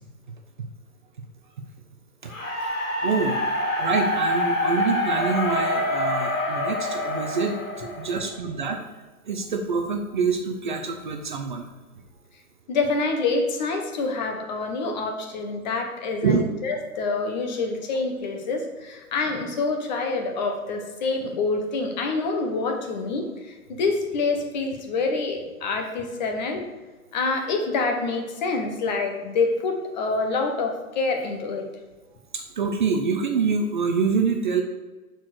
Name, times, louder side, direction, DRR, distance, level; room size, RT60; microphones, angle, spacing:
sound 1, 2.3-8.4, left 1 dB, 60° left, 2.5 m, -26 dB
voice 1, 3.0-3.4 3.8-8.8 9.3-11.7 14.9-15.0 16.2-16.4 32.3-34.6, right 5 dB, 35° right, 3 dB, 0.6 m, -26 dB
voice 2, 12.7-26.7 27.1-31.7, left 3 dB, 30° left, 3 dB, 1.1 m, -26 dB
7.1 x 4.6 x 6.4 m, 1.3 s
figure-of-eight pair, 130°, 44 cm